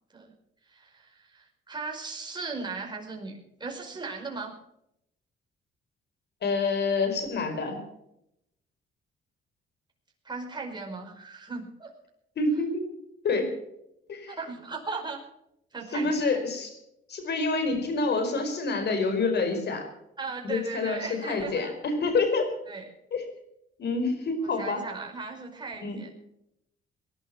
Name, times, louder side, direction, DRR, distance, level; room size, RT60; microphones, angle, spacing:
voice 1, 0.7-4.5 10.2-11.9 14.3-15.2 15.7-16.1 20.2-21.7 22.7-22.9 24.4-26.1, right 4 dB, 20° right, 0 dB, 5.1 m, -37 dB
voice 2, 6.4-7.8 12.4-12.9 13.2-13.5 14.1-14.4 15.9-16.8 17.1-19.9 20.4-22.5 23.1-23.2 23.8-24.8 25.8-26.0, left 3 dB, 60° left, 7 dB, 4.7 m, -27 dB
19.0 x 11.5 x 5.9 m, 0.79 s
cardioid pair, 90°, 20 cm